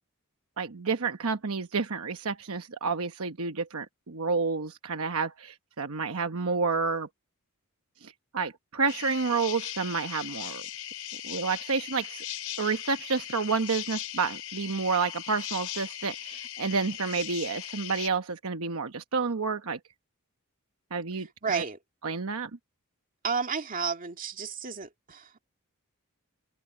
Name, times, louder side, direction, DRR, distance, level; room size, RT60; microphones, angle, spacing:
voice 1, 0.6-7.1 8.0-10.6 11.2-12.2 12.6-19.8 20.9-21.6 22.0-22.5, right 4 dB, 70° right, 1.0 m, -30 dB
sound 1, 8.9-18.1, left 11 dB, 75° left, 6.8 m, -39 dB
voice 2, 21.4-21.8 23.2-25.4, right 5 dB, 40° right, 2.2 m, -32 dB
open air
head